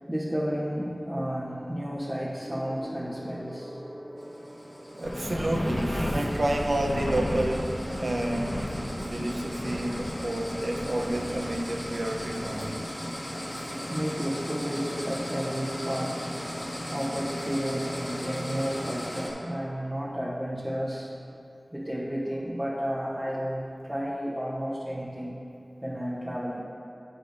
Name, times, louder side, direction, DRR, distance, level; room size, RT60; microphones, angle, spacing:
voice 1, 0.1-3.8 13.9-16.2 16.9-21.1 21.7-25.4 25.8-26.6, equal, 15° right, -7 dB, 0.9 m, -32 dB
Gong, 2.4-12.1 13.1-13.3, equal, 45° right, 1.7 m, -47 dB
sound 1, 4.2-19.3, equal, 25° left, 1.4 m, -37 dB
voice 2, 4.9-8.7 9.0-12.8 13.6-13.7, right 1 dB, 70° right, 1 dB, 0.7 m, -30 dB
sound 2, 5.0-12.6, left 1 dB, 60° left, 1.5 m, -33 dB
8.5 x 8.1 x 2.6 m, 2.6 s
wide cardioid pair, 60°, 0 cm